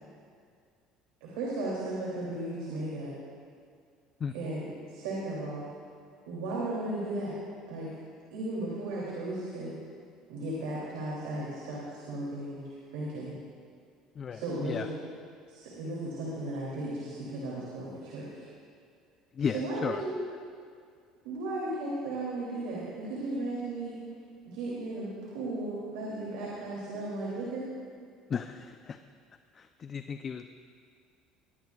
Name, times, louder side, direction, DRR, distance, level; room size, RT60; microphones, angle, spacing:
voice 1, 1.2-3.1 4.3-5.6 6.3-7.3 7.7-7.9 8.3-9.7 10.3-12.6 12.9-13.3 14.3-14.9 15.5-18.5 19.5-20.1 21.2-24.0 24.4-27.6, right 2 dB, 85° right, -5 dB, 2.9 m, -35 dB
voice 2, 14.2-14.9 19.3-20.0 28.3-29.0 29.5-30.5, left 6 dB, 40° left, 8 dB, 0.5 m, -34 dB
21.0 x 15.5 x 2.4 m, 2.2 s
supercardioid pair, 95°, 0 cm